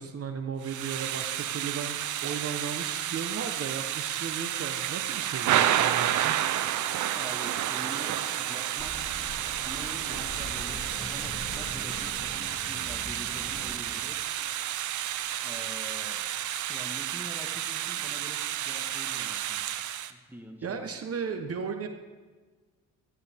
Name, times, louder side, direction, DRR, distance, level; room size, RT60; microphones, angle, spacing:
voice 1, 0.0-6.4 20.6-21.9, right 6 dB, 50° right, 6 dB, 1.2 m, -35 dB
Thunder / Rain, 0.6-20.1, right 12 dB, 75° right, 0.8 m, -31 dB
voice 2, 7.2-9.1 9.6-14.3 15.4-16.2 16.7-19.7 20.1-20.9, right 1 dB, 5° right, 2 dB, 1.7 m, -45 dB
sound 1, 8.8-14.0, left 1 dB, 30° left, 1.8 m, -42 dB
16.0 x 15.5 x 3.7 m, 1.4 s
cardioid pair, 90°, 30 cm